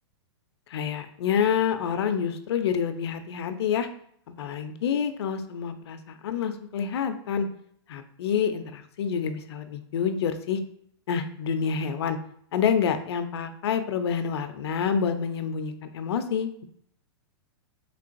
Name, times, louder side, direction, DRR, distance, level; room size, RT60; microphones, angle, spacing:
voice 1, 0.7-3.9 4.4-6.0 6.2-7.5 7.9-10.6 11.1-12.2 12.5-16.6, left 7 dB, 70° left, 9 dB, 0.5 m, -27 dB
3.7 x 3.3 x 2.5 m, 0.66 s
hypercardioid pair, 130°, 14 cm